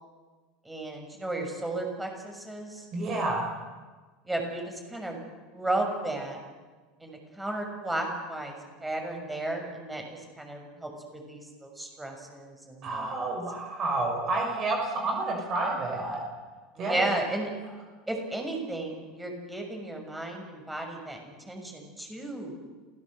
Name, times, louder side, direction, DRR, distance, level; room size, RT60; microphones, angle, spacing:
voice 1, 0.6-2.9 4.2-6.4 7.0-13.2 16.8-17.5 18.1-22.6, right 2 dB, 10° right, 3 dB, 6.6 m, -34 dB
voice 2, 2.9-3.5 12.8-16.2 16.8-17.1, right 2 dB, 40° right, 1 dB, 6.5 m, -29 dB
27.5 x 17.5 x 8.0 m, 1.4 s
supercardioid pair, 115°, 0 cm